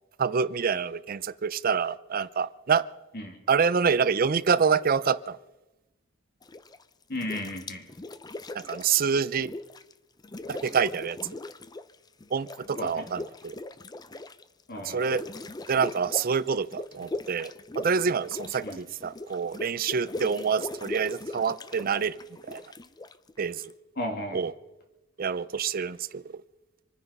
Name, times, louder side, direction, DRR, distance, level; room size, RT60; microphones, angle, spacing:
voice 1, 0.2-2.8 3.5-5.4 8.5-9.5 10.5-11.2 12.3-13.6 14.8-15.2 15.7-22.2 22.5-22.6 23.4-23.6 24.3-24.5 25.2-26.4, right 6 dB, 45° right, 16 dB, 0.5 m, -27 dB
sound 1, 6.4-6.8 7.1-9.9 10.2-11.9 12.2-23.7, left 2 dB, 20° left, 0.6 m, -40 dB
voice 2, 7.1-7.9 12.8-13.1 14.7-15.1 18.6-18.8 24.0-24.4, left 1 dB, 50° left, 3 dB, 2.9 m, -34 dB
26.0 x 9.9 x 5.3 m, 1.0 s
head